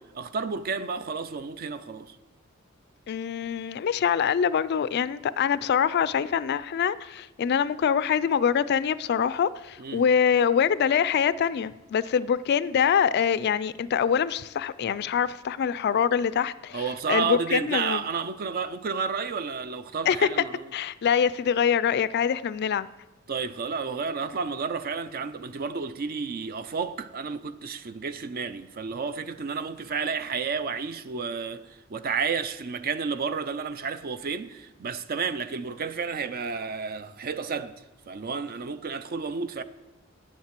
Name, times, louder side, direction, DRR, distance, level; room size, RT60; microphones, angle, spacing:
voice 1, 0.2-2.2 9.8-10.0 16.7-20.7 23.3-37.7 38.1-39.6, right 5 dB, 45° right, 0.5 m, -31 dB
voice 2, 3.1-18.0 20.1-20.3 20.7-22.9, left 7 dB, 50° left, 0.3 m, -24 dB
8.5 x 7.3 x 7.4 m
head